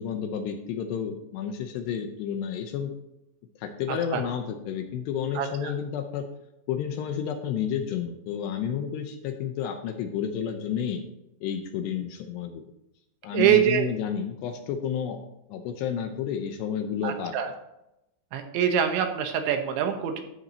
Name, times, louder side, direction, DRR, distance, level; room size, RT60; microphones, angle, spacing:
voice 1, 0.0-2.9 3.6-6.2 6.7-11.0 11.4-12.7 13.2-15.2 15.5-17.4, left 8 dB, 80° left, 6 dB, 2.7 m, -31 dB
voice 2, 3.9-4.2 5.4-5.7 13.3-13.9 17.0-17.5 18.3-20.2, right 9 dB, 80° right, 6 dB, 3.4 m, -24 dB
13.0 x 10.5 x 2.9 m, 0.87 s
omnidirectional pair, 5.4 m